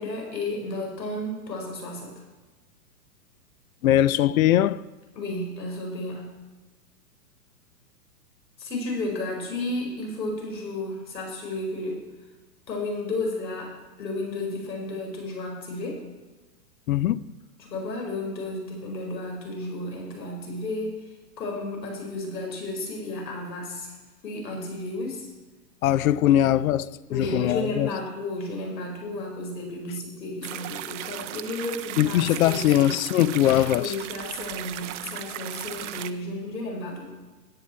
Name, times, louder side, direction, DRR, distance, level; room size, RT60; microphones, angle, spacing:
voice 1, 0.0-2.1 5.2-6.3 8.6-12.0 12.7-13.7 14.0-16.0 17.6-20.9 21.4-23.9 24.2-25.3 26.3-26.4 27.1-32.9 33.8-37.1, left 2 dB, 85° left, 5.0 m, -32 dB
voice 2, 3.8-4.8 16.9-17.2 25.8-27.9 32.0-33.9, left 12 dB, 60° left, 0.6 m, -21 dB
sound 1, 30.4-36.1, right 13 dB, 50° right, 0.7 m, -36 dB
16.5 x 10.0 x 4.4 m
hypercardioid pair, 145°, 49 cm